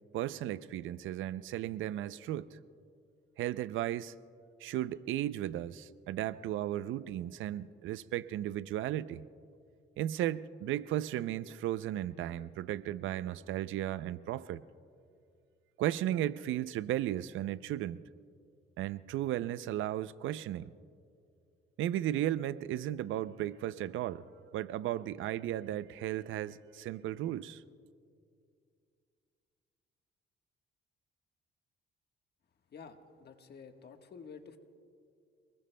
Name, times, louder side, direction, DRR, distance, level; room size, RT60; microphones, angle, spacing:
voice 1, 0.1-2.6 3.4-4.1 4.6-9.2 10.0-14.6 15.8-18.0 18.8-20.7 21.8-24.2 24.5-27.6, right 12 dB, 80° right, 16 dB, 0.5 m, -35 dB
voice 2, 32.7-34.6, left 5 dB, 55° left, 6 dB, 1.4 m, -50 dB
29.0 x 20.5 x 2.2 m, 2.4 s
cardioid pair, 90°, 20 cm